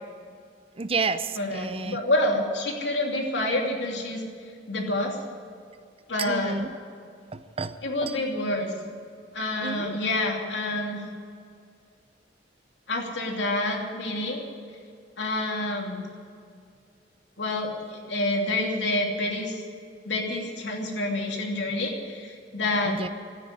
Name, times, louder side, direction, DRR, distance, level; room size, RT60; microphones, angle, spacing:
voice 1, 0.8-2.0 6.2-6.7 7.3-7.7 8.0-8.1 9.6-10.0 22.8-23.1, right 4 dB, 35° right, 12 dB, 0.6 m, -30 dB
voice 2, 1.4-4.2 4.7-5.2 6.1-6.6 7.8-8.7 9.3-11.0 12.9-14.4 15.2-16.0 17.4-19.6 20.0-22.9, left 1 dB, 80° left, 0 dB, 2.9 m, -28 dB
13.5 x 9.7 x 10.0 m, 2.3 s
head